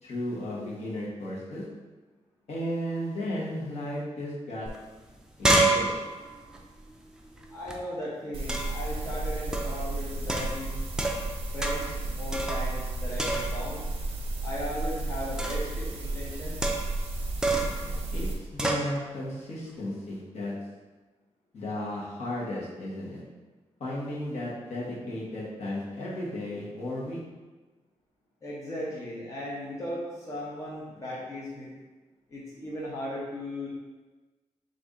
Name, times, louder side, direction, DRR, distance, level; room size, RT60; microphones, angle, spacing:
voice 1, 0.0-1.6 2.5-4.7 5.4-5.9 17.8-20.5 21.5-23.2 23.8-27.2, left 1 dB, 65° left, -6 dB, 1.1 m, -34 dB
sound 1, 4.7-4.8 5.0-7.8 8.5-8.9 9.5-9.8 10.3-11.3 11.6-12.0 12.3-12.9 13.2-13.8 15.4-15.7 16.6-17.0 17.4-17.8 18.6-18.9, right 2 dB, 5° right, 0.3 m, -28 dB
voice 2, 7.5-10.8 11.5-13.8 14.4-16.7 28.4-31.7 32.3-33.7, left 1 dB, 25° left, -6 dB, 0.6 m, -37 dB
sound 2, 8.3-18.3, right 2 dB, 50° right, 0.6 m, -33 dB
4.0 x 2.5 x 3.7 m, 1.2 s
wide cardioid pair, 165°, 12 cm